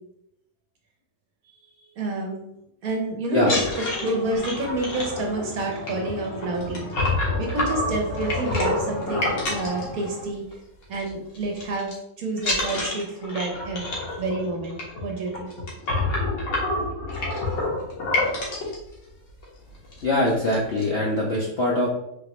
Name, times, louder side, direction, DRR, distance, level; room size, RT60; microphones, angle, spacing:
voice 1, 2.0-2.4 2.8-3.6 4.0-6.9 7.4-10.4 10.9-11.9 12.2-13.9 14.2-15.5, right 2 dB, 65° right, 1 dB, 1.0 m, -28 dB
sound 1, 3.4-10.5 10.8-11.1 11.3-11.9 12.4-18.7 19.4-19.5 19.8-20.0 20.3-20.8, left 2 dB, 85° left, 1.8 m, -28 dB
voice 2, 20.0-21.9, left 1 dB, 65° left, -4 dB, 0.7 m, -23 dB
3.9 x 3.0 x 2.9 m, 0.82 s
omnidirectional pair, 1.9 m